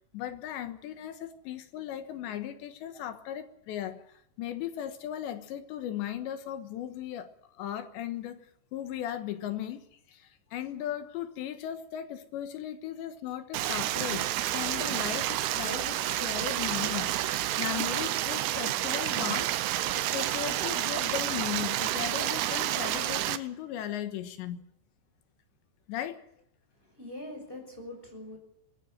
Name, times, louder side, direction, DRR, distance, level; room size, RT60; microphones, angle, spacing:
voice 1, 0.1-8.5 8.7-19.5 20.0-24.6 25.9-26.2, left 11 dB, 75° left, 9 dB, 3.4 m, -37 dB
Stream, 13.5-23.4, right 13 dB, 75° right, 2.5 m, -30 dB
voice 2, 26.7-28.4, left 1 dB, 10° left, 3 dB, 6.5 m, -43 dB
20.0 x 15.5 x 9.0 m, 0.74 s
omnidirectional pair, 5.3 m